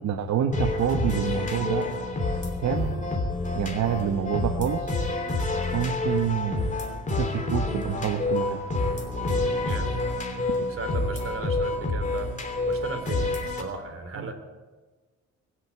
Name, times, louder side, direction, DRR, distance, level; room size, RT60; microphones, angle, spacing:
voice 1, 0.0-1.9 2.6-3.0 3.5-4.9 5.7-6.7 7.1-8.6 14.2-14.3, right 8 dB, 65° right, 6 dB, 1.1 m, -27 dB
sound 1, 0.5-13.6, left 2 dB, 25° left, 2.9 m, -28 dB
voice 2, 9.6-9.9 10.5-12.3 12.6-14.3, right 3 dB, 45° right, 6 dB, 3.2 m, -36 dB
21.5 x 8.1 x 8.3 m, 1.3 s
cardioid pair, 90°, 30 cm